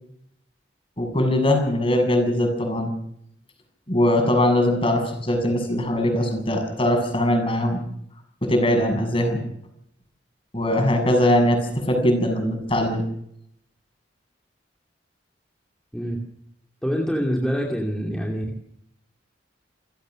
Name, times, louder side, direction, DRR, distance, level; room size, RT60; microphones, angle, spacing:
voice 1, 1.0-2.9 3.9-7.8 8.4-9.4 10.5-13.0, left 1 dB, 30° left, 4 dB, 7.3 m, -21 dB
voice 2, 16.8-18.4, equal, 5° left, -1 dB, 2.7 m, -25 dB
29.0 x 16.0 x 6.4 m, 0.73 s
head